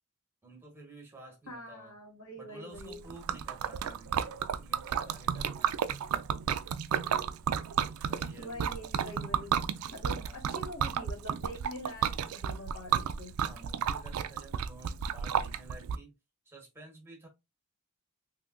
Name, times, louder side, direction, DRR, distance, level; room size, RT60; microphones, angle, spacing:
voice 1, 0.4-1.9 2.4-5.8 8.0-8.8 10.1-10.5 13.4-16.1 16.4-17.3, right 2 dB, 10° right, 1.2 m, -52 dB
voice 2, 1.5-3.0 8.4-10.2 10.5-13.3, equal, 75° left, 1.6 m, -44 dB
Liquid, 2.8-16.0, right 8 dB, 75° right, 0.3 m, -32 dB
3.6 x 2.7 x 2.5 m
head